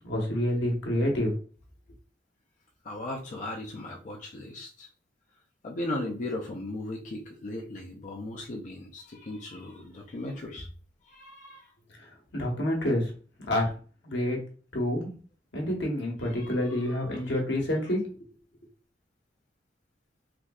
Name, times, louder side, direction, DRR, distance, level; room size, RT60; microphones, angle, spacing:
voice 1, 0.0-1.3 12.3-13.1 13.4-13.7 14.0-14.4 14.7-15.1 15.5-18.0, left 1 dB, 75° left, 0 dB, 1.0 m, -28 dB
voice 2, 2.8-4.9 5.6-10.7 11.1-11.7 16.3-17.4, left 1 dB, 45° left, -1 dB, 0.5 m, -37 dB
3.4 x 2.6 x 2.3 m, 0.40 s
head